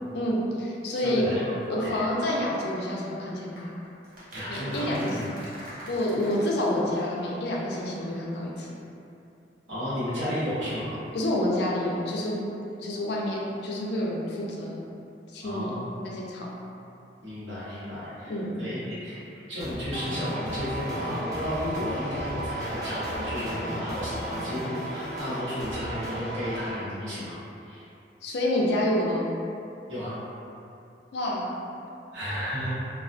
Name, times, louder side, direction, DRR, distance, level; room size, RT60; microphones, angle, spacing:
voice 1, 0.1-1.3 1.7-3.7 4.5-5.2 5.9-8.7 11.1-12.4 12.8-14.8 15.3-15.7 16.0-16.5 18.3-18.5 28.2-29.3 31.1-31.5, left 1 dB, 60° left, -3 dB, 0.4 m, -28 dB
voice 2, 0.9-2.0 4.3-5.3 5.7-5.8 9.7-10.9 15.4-15.9 17.2-27.3 27.6-27.8 29.9-30.1 32.1-32.7, equal, 85° right, -11 dB, 0.9 m, -33 dB
sound 1, 3.6-7.6 7.8-7.9 8.1-8.2, equal, 50° right, 0.7 m, -44 dB
sound 2, 19.6-26.2, equal, 20° right, 0.3 m, -38 dB
sound 3, 19.9-26.7, right 1 dB, 15° left, 0.7 m, -36 dB
2.3 x 2.1 x 2.5 m, 2.7 s
head